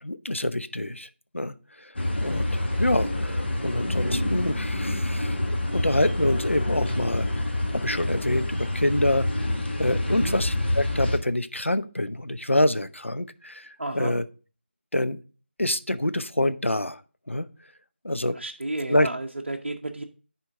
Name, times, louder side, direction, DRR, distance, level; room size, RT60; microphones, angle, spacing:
voice 1, 0.0-1.1 1.3-9.3 9.8-13.7 13.9-14.2 14.9-15.2 15.6-17.0 17.3-17.5 18.0-18.4 18.9-19.1, left 1 dB, 85° left, 12 dB, 0.6 m, -26 dB
sound 1, 2.0-11.2, left 1 dB, 60° left, 1.5 m, -27 dB
voice 2, 13.8-14.1 18.3-20.0, right 2 dB, 60° right, 2 dB, 0.8 m, -32 dB
10.0 x 4.5 x 3.6 m, 0.36 s
figure-of-eight pair, 160°, 7 cm